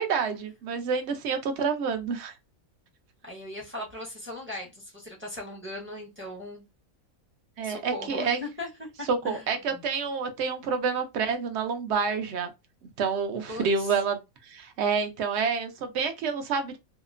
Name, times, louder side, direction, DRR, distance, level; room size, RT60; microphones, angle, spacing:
voice 1, 0.0-2.4 7.6-8.4 9.1-12.5 13.0-16.8, right 5 dB, 65° right, 0.7 m, -28 dB
voice 2, 3.2-6.6 7.6-9.8 13.5-13.9, left 1 dB, 15° right, 0.5 m, -39 dB
2.9 x 2.0 x 2.4 m
omnidirectional pair, 1.5 m